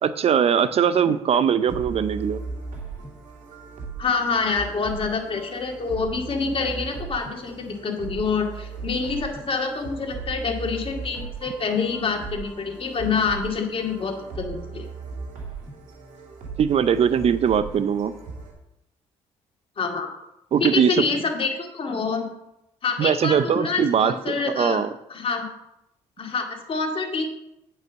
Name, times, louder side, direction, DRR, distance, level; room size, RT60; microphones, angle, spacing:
voice 1, 0.0-2.4 16.6-18.1 20.5-21.0 23.0-24.9, right 8 dB, 55° right, 14 dB, 0.6 m, -21 dB
sound 1, 1.7-18.5, right 4 dB, 75° right, 2.4 m, -37 dB
voice 2, 4.0-14.9 19.8-20.1 20.6-22.3 22.8-24.8 25.1-25.4 26.2-27.3, left 4 dB, 45° left, 3 dB, 2.2 m, -26 dB
9.1 x 5.6 x 6.3 m, 0.87 s
supercardioid pair, 70°, 13 cm